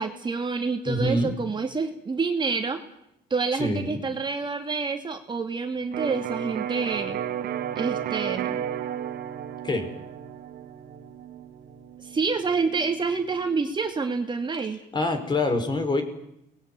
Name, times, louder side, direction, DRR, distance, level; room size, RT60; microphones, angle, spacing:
voice 1, 0.0-2.8 3.3-7.2 7.8-8.6 12.0-14.8, right 4 dB, 25° right, 5 dB, 2.6 m, -28 dB
voice 2, 0.9-1.3 3.5-4.0 9.6-9.9 14.9-16.0, left 2 dB, 25° left, 6 dB, 5.9 m, -25 dB
Electric guitar, 5.9-13.7, right 10 dB, 65° right, 2.0 m, -33 dB
29.0 x 20.5 x 9.7 m, 0.79 s
cardioid pair, 110°, 17 cm